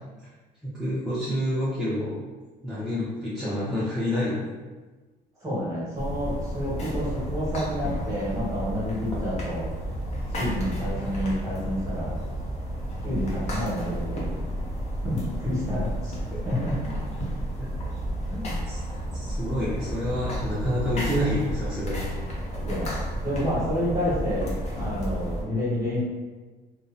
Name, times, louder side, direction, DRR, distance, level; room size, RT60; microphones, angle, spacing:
voice 1, 0.6-2.2 2.6-4.4 18.7-18.8 19.1-22.0, equal, ahead, -11 dB, 0.6 m, -28 dB
voice 2, 5.4-9.7 10.3-12.2 13.0-14.3 15.0-16.2 16.4-16.9 18.3-18.4 22.6-26.0, equal, 20° right, -7 dB, 1.2 m, -29 dB
sound 1, 5.9-25.4, equal, 40° left, 0.7 m, -31 dB
2.7 x 2.1 x 2.5 m, 1.3 s
cardioid pair, 110°, 17 cm